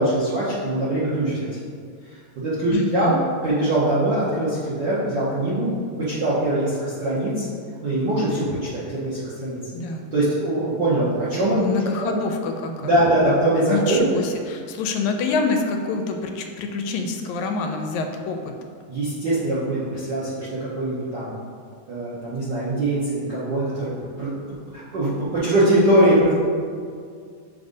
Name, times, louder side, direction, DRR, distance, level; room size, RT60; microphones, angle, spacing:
voice 1, 0.0-1.5 2.4-3.2 3.4-5.7 6.0-7.5 7.8-9.6 10.1-11.6 12.0-12.1 12.8-14.1 18.9-21.3 21.9-23.9 24.2-24.3 24.7-26.3, right 1 dB, 65° right, -10 dB, 1.0 m, -22 dB
voice 2, 2.7-3.2 9.7-10.1 11.5-13.1 13.7-18.5, left 3 dB, 85° left, 4 dB, 1.9 m, -26 dB
7.2 x 2.7 x 5.2 m, 2.1 s
omnidirectional pair, 3.3 m